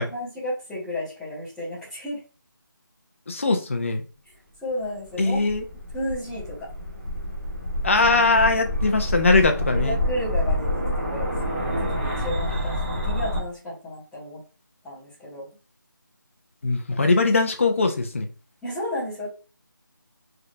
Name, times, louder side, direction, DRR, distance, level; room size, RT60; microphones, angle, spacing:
voice 1, 0.0-2.2 4.6-5.5 5.9-6.7 9.6-14.4 14.8-15.5 18.6-19.3, left 1 dB, ahead, 0.8 m, -33 dB
voice 2, 3.3-4.0 5.2-5.6 7.8-10.0 16.6-18.3, left 3 dB, 35° left, 0.5 m, -21 dB
sound 1, 5.0-13.4, left 1 dB, 25° right, 0.8 m, -27 dB
3.3 x 2.7 x 2.4 m
figure-of-eight pair, 165°, 11 cm